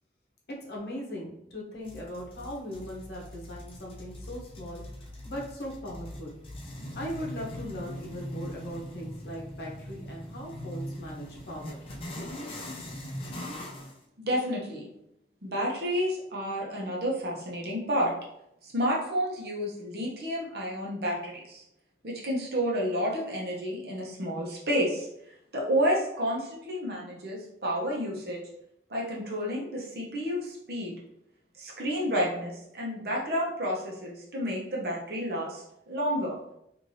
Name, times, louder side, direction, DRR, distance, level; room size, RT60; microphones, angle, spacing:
voice 1, 0.6-4.8 5.2-6.4 7.0-12.5, equal, 60° left, -2 dB, 0.8 m, -39 dB
sound 1, 1.8-14.0, left 1 dB, 30° left, 0.4 m, -41 dB
voice 2, 14.2-14.8 15.4-18.1 18.6-21.6 22.0-25.1 25.5-28.4 28.9-30.9 31.5-36.4, equal, 55° right, -3 dB, 0.8 m, -30 dB
3.2 x 2.6 x 2.7 m, 0.78 s
head